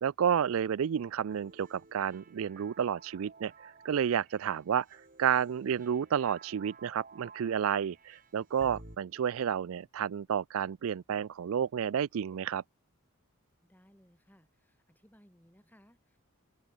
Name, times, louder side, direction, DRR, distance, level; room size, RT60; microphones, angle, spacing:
voice 1, 0.0-12.6, right 8 dB, 65° right, 0.4 m, -31 dB
sound 1, 1.3-9.0, right 3 dB, 40° right, 5.0 m, -54 dB
voice 2, 13.6-16.2, equal, 10° left, 7.8 m, -62 dB
open air
head